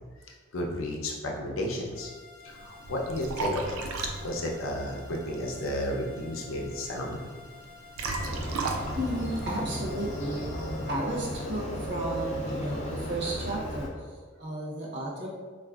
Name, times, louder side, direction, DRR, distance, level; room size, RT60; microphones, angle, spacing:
voice 1, 0.5-2.1 2.4-3.8 4.2-7.2, left 1 dB, 80° left, 0 dB, 0.6 m, -32 dB
sound 1, 1.9-10.9, left 4 dB, 15° right, 0.5 m, -51 dB
Liquid, 2.5-10.2, right 3 dB, 90° right, 0.4 m, -37 dB
Motorcycle, 8.2-13.9, equal, 35° left, 0.4 m, -35 dB
voice 2, 8.9-15.3, right 1 dB, 55° right, -3 dB, 0.7 m, -33 dB
4.0 x 2.4 x 2.3 m, 1.5 s
head